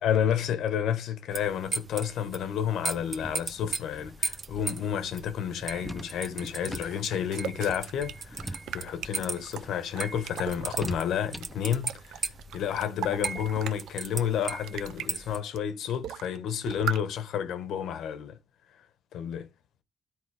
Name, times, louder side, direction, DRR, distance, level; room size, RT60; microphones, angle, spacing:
voice 1, 0.0-12.2 12.5-18.4 19.1-19.5, left 9 dB, 80° left, 1.1 m, -30 dB
sound 1, 1.3-15.4, right 4 dB, 40° right, 1.1 m, -38 dB
sound 2, 2.9-11.7, equal, ahead, 0.8 m, -44 dB
sound 3, 6.2-10.9 11.3-13.9 14.3-15.1 15.5-15.6 15.9-16.4 16.7-17.0, right 10 dB, 80° right, 0.5 m, -39 dB
12.5 x 4.4 x 3.4 m
cardioid pair, 90°, 0 cm